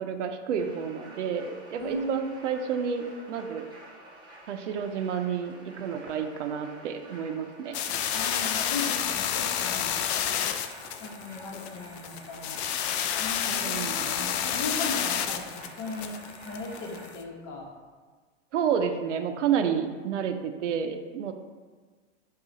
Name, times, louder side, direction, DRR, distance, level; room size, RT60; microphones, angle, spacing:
voice 1, 0.0-3.7 4.5-7.8 13.5-14.3 18.5-21.3, right 7 dB, 85° right, 7 dB, 0.5 m, -30 dB
sound 1, 0.6-17.1, right 1 dB, 15° right, 0.9 m, -49 dB
voice 2, 1.8-2.3 8.1-10.0 11.0-12.6 13.2-16.2 16.5-17.7, left 2 dB, 45° left, -1 dB, 1.1 m, -37 dB
sound 2, 7.7-17.2, left 9 dB, 65° left, 0.5 m, -30 dB
4.8 x 2.4 x 3.8 m, 1.4 s
hypercardioid pair, 110°, 35 cm